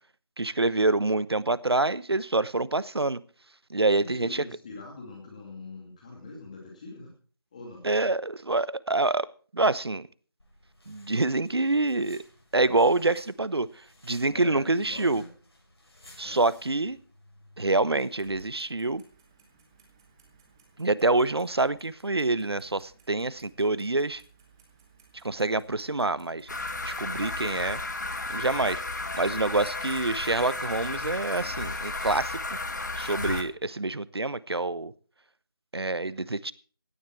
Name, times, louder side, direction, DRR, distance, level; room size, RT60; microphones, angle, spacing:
voice 1, 0.4-3.2 3.7-4.4 7.8-9.3 9.5-10.1 10.9-12.2 12.5-15.2 16.2-17.0 17.6-19.0 20.8-24.2 25.2-26.5 26.8-27.8 28.3-32.6 33.0-34.9 35.7-36.5, right 2 dB, 90° right, 18 dB, 1.0 m, -26 dB
voice 2, 4.0-7.1 7.5-7.9 14.3-15.3 16.2-16.4, left 3 dB, 20° left, -1 dB, 2.4 m, -43 dB
sound 1, 10.4-18.9, left 1 dB, 85° left, 8.0 m, -56 dB
Clock, 17.8-32.9, right 4 dB, 10° right, 1.2 m, -54 dB
sound 2, 26.5-33.4, left 2 dB, 45° left, 2.0 m, -33 dB
16.5 x 10.5 x 4.6 m, 0.41 s
figure-of-eight pair, 170°, 13 cm